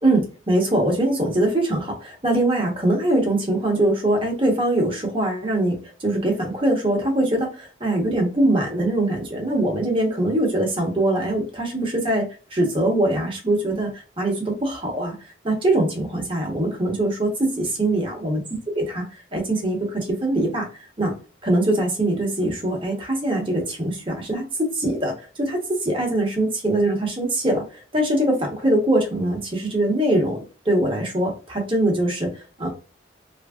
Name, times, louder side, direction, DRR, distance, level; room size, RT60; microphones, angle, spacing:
voice 1, 0.0-15.1 15.4-17.3 17.6-18.4 18.7-20.7 21.0-21.1 21.4-30.4 30.6-32.7, right 1 dB, 25° right, 1 dB, 0.9 m, -22 dB
3.2 x 2.6 x 2.3 m, 0.34 s
head